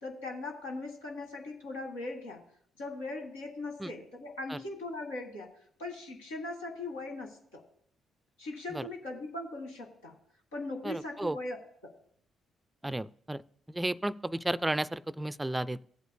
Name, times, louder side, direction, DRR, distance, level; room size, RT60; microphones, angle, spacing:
voice 1, 0.0-2.4 2.8-5.5 5.8-7.6 8.4-10.1 10.5-11.6 11.8-11.9, left 2 dB, 80° left, 1 dB, 1.7 m, -39 dB
voice 2, 10.8-11.4 12.8-13.4 13.7-15.8, right 1 dB, 15° right, 18 dB, 0.4 m, -33 dB
16.5 x 8.0 x 2.3 m, 0.64 s
hypercardioid pair, 45°, 0 cm